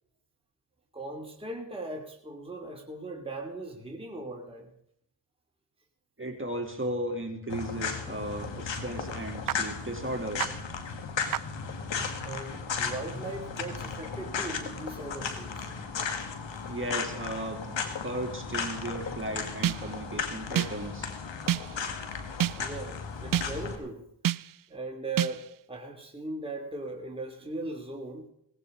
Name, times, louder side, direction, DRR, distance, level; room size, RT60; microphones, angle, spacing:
voice 1, 0.9-4.7 12.2-15.7 22.5-24.0 24.7-28.3, right 2 dB, 10° right, 0 dB, 3.0 m, -39 dB
voice 2, 6.2-10.6 16.6-21.1, right 1 dB, 30° right, 1 dB, 3.2 m, -35 dB
sound 1, 7.5-23.8, left 5 dB, 80° left, 2.0 m, -35 dB
sound 2, 9.5-9.6 10.4-10.5 11.3-11.4 19.6-20.0 20.5-21.0 21.5-21.9 22.4-22.8 23.3-23.7 24.2-24.7 25.2-25.6, right 11 dB, 50° right, 0.5 m, -29 dB
17.5 x 16.5 x 3.9 m, 0.73 s
cardioid pair, 50°, 44 cm